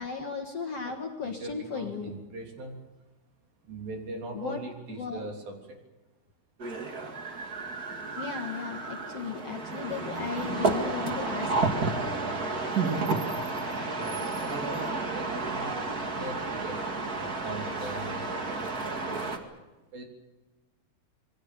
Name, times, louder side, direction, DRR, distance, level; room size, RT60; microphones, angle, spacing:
voice 1, 0.0-2.1 4.3-4.6 5.0-5.3 8.2-11.5, left 5 dB, 50° left, 3 dB, 2.2 m, -35 dB
voice 2, 1.2-2.8 3.6-5.8 14.0-15.7 16.0-19.3 19.9-20.0, right 2 dB, 60° right, 2 dB, 5.2 m, -41 dB
sound 1, 6.6-19.4, right 3 dB, 30° right, 1.8 m, -31 dB
27.5 x 21.5 x 6.8 m, 1.1 s
omnidirectional pair, 4.7 m